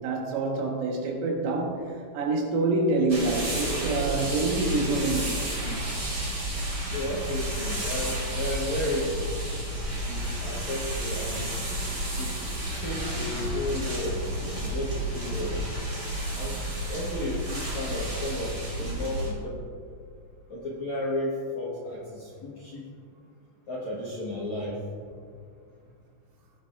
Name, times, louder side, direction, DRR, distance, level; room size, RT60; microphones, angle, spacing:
voice 1, 0.0-5.8 11.7-11.8, right 3 dB, 80° right, 0 dB, 4.0 m, -27 dB
sound 1, 3.1-19.3, right 1 dB, 30° right, 2.3 m, -31 dB
voice 2, 6.9-9.3 10.1-11.6 12.2-12.3 12.8-14.2 14.6-15.6 16.3-19.6 20.5-22.8 23.7-24.8, left 1 dB, 65° left, -6 dB, 1.8 m, -33 dB
18.5 x 9.1 x 2.6 m, 2.2 s
omnidirectional pair, 5.6 m